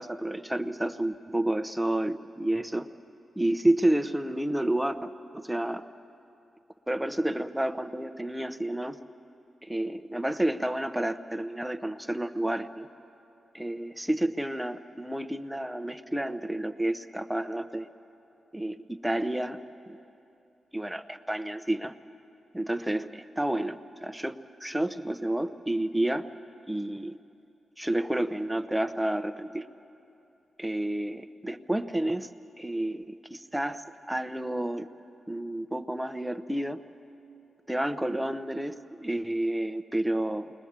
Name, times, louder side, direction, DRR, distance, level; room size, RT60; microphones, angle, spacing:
voice 1, 0.0-2.9 3.4-5.8 6.9-9.0 9.6-12.9 13.5-17.9 18.5-19.6 19.9-20.0 20.7-21.9 22.5-26.3 26.7-27.2 27.8-29.7 30.6-32.3 32.6-33.8 34.1-34.9 35.3-36.8 37.7-40.5, right 1 dB, 5° right, 9 dB, 0.9 m, -30 dB
28.5 x 21.5 x 7.5 m, 2.8 s
cardioid pair, 55°, 0 cm